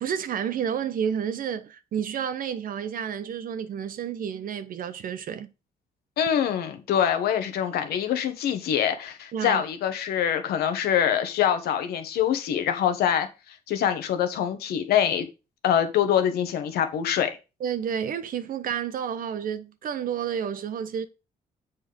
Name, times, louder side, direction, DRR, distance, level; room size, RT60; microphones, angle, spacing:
voice 1, 0.0-5.5 9.3-9.6 17.6-21.1, right 8 dB, 65° right, 0.9 m, -30 dB
voice 2, 6.2-15.3 15.6-17.3, left 9 dB, 85° left, 1.4 m, -24 dB
7.4 x 4.3 x 5.1 m
cardioid pair, 90°, 16 cm